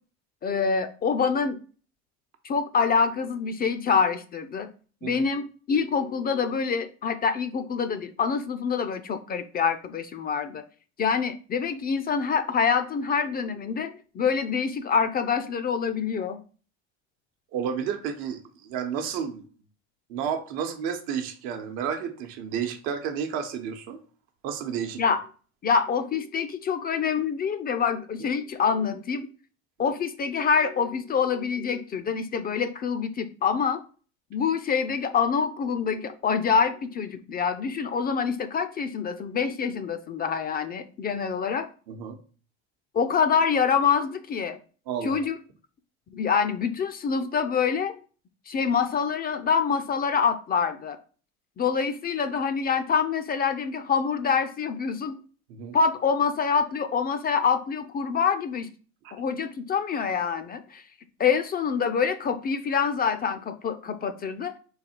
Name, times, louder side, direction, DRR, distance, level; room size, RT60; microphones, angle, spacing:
voice 1, 0.4-1.6 2.4-4.7 5.0-10.6 11.0-16.4 25.0-25.2 25.6-29.3 29.8-33.8 34.3-41.7 42.9-44.6 45.0-45.3 46.1-48.0 48.5-51.0 51.6-55.2 55.7-58.7 59.1-60.8 61.2-64.5, left 6 dB, 30° left, 9 dB, 0.4 m, -26 dB
voice 2, 17.5-19.4 20.1-24.0 24.4-25.0 41.9-42.2 44.9-45.2 55.5-55.7 59.0-59.1, right 7 dB, 70° right, 5 dB, 0.9 m, -31 dB
4.0 x 2.7 x 4.3 m, 0.39 s
supercardioid pair, 95°, 34 cm